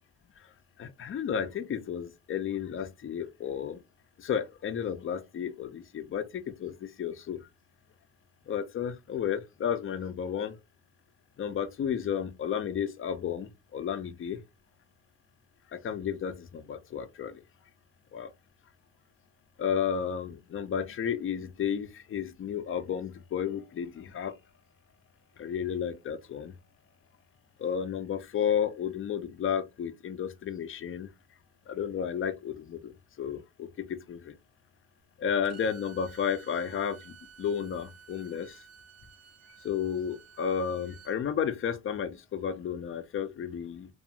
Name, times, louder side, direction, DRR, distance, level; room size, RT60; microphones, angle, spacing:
voice 1, 0.8-3.8 4.2-7.4 8.5-10.6 11.4-14.4 15.7-17.4 18.1-18.3 19.6-24.3 25.4-26.5 27.6-31.1 31.7-32.9 33.2-34.4 35.2-38.6 39.6-43.9, left 8 dB, 45° left, 0.5 m, -32 dB
Bowed string instrument, 35.4-41.2, right 7 dB, 55° right, 0.7 m, -54 dB
2.4 x 2.4 x 2.7 m
cardioid pair, 90°, 30 cm